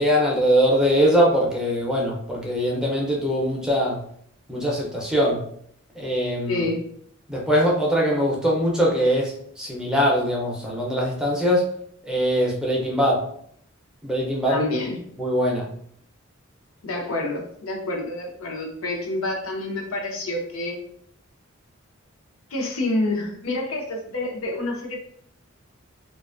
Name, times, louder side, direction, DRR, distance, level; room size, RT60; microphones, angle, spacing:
voice 1, 0.0-4.0 4.5-5.4 5.9-6.6 7.3-11.7 12.1-13.2 14.0-14.7 15.2-15.7, equal, 5° right, -3 dB, 0.5 m, -22 dB
voice 2, 6.5-6.8 14.5-14.9 16.8-20.8 22.5-25.0, left 2 dB, 80° left, 0 dB, 0.6 m, -28 dB
2.4 x 2.3 x 2.4 m, 0.65 s
head